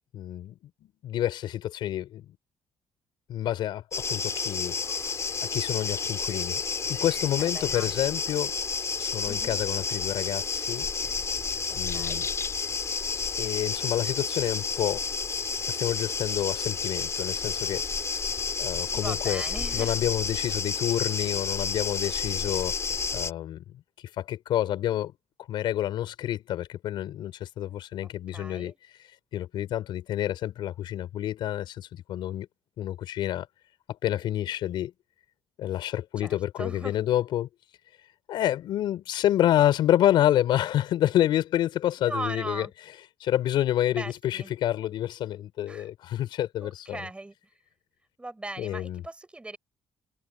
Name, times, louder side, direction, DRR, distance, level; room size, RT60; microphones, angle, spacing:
voice 1, 0.1-2.2 3.3-3.8 4.1-4.8 5.5-6.6 6.9-8.5 9.0-10.9 11.8-12.3 13.4-15.0 15.7-17.8 18.6-19.4 19.7-22.8 23.1-23.6 24.2-25.1 25.5-28.7 29.3-32.5 32.8-33.5 34.0-34.9 35.6-37.5 38.3-42.7 43.2-47.1 48.6-49.0, left 12 dB, 80° left, 4.8 m, -28 dB
sound 1, 3.9-23.3, left 5 dB, 35° left, 3.9 m, -30 dB
voice 2, 7.4-8.2 9.3-9.6 11.7-12.2 18.9-20.0 28.3-28.8 36.2-37.0 42.0-42.7 43.9-44.5 45.7-45.9 46.6-47.3 48.2-49.6, right 2 dB, 15° right, 6.4 m, -39 dB
cardioid pair, 105°, 8 cm